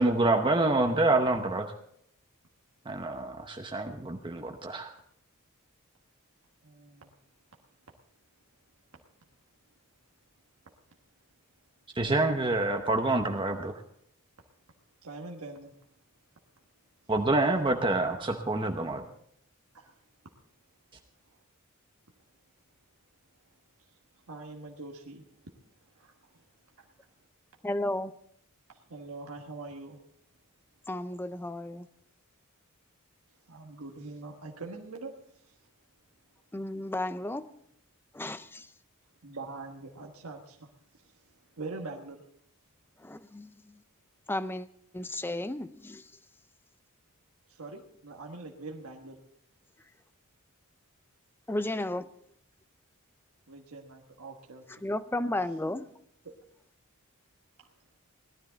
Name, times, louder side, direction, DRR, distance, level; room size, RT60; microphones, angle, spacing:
voice 1, 0.0-1.7 2.9-4.9 12.0-13.7 17.1-19.0, right 2 dB, 20° right, 4 dB, 0.8 m, -27 dB
voice 2, 6.6-7.1 15.0-15.7 19.7-19.9 24.3-25.2 25.9-26.4 26.8-26.9 28.7-30.0 33.5-35.6 39.2-40.7 41.6-42.2 47.5-49.2 53.5-54.8 56.2-56.3, right 3 dB, 75° right, 1 dB, 1.4 m, -43 dB
voice 3, 27.6-28.1 30.9-31.9 36.5-37.5 38.1-38.7 43.0-43.8 44.3-44.7 44.9-46.1 51.5-52.1 54.7-55.9, left 1 dB, 10° left, 13 dB, 0.5 m, -33 dB
18.0 x 12.5 x 3.9 m, 0.72 s
head